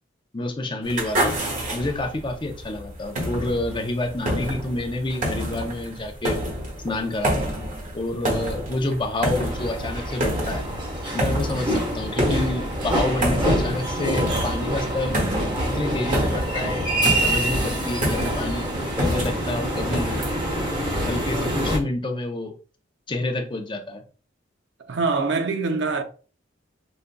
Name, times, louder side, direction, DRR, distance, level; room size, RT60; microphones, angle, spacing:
voice 1, 0.3-1.4 1.7-6.4 6.8-7.5 7.9-10.6 11.1-15.1 15.6-18.7 19.0-20.2 21.0-22.5 23.1-24.0, left 2 dB, 25° left, 0.6 m, -28 dB
sound 1, 0.8-20.3, right 1 dB, 45° right, 1.4 m, -29 dB
sound 2, 9.4-21.8, right 1 dB, 25° right, 1.2 m, -26 dB
voice 2, 24.8-26.0, right 4 dB, 70° right, 0.5 m, -24 dB
5.1 x 2.3 x 2.2 m
head